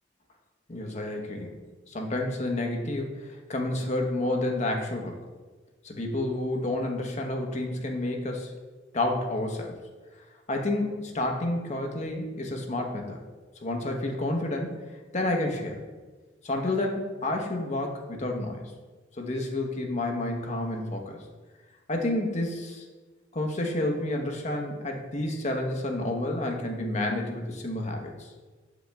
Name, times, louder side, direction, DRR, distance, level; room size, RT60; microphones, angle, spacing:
voice 1, 0.7-1.5 1.9-5.2 5.8-8.5 8.9-9.7 10.5-13.2 13.6-14.8 15.1-15.8 16.4-18.7 19.2-21.2 21.9-22.9 23.3-28.3, left 1 dB, 40° left, 2 dB, 0.9 m, -30 dB
6.4 x 5.0 x 3.4 m, 1.3 s
head